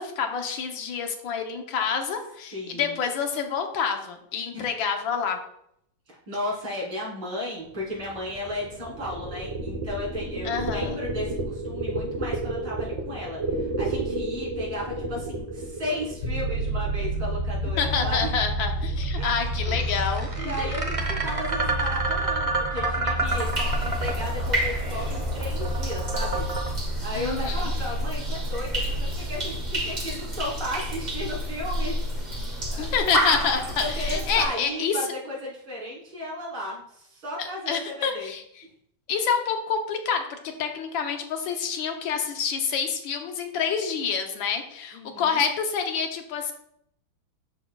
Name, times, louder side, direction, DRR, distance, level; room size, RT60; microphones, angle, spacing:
voice 1, 0.0-5.4 10.4-11.0 17.8-20.7 27.1-27.7 32.8-35.1 37.4-38.4 39.1-46.5, left 6 dB, 75° left, 5 dB, 1.5 m, -28 dB
voice 2, 2.5-2.9 4.5-4.7 6.1-18.3 19.2-19.3 19.7-19.8 20.4-23.5 23.8-26.4 27.0-31.9 32.7-33.1 33.8-38.3 44.9-45.4, left 1 dB, 80° right, -6 dB, 3.9 m, -34 dB
sound 1, 7.8-17.7 19.0-26.7, right 2 dB, 45° right, 0.4 m, -30 dB
sound 2, 16.2-30.0, right 2 dB, 90° left, 1.7 m, -31 dB
sound 3, 23.3-34.5, equal, 25° right, 1.2 m, -29 dB
12.5 x 4.3 x 2.3 m, 0.73 s
omnidirectional pair, 2.2 m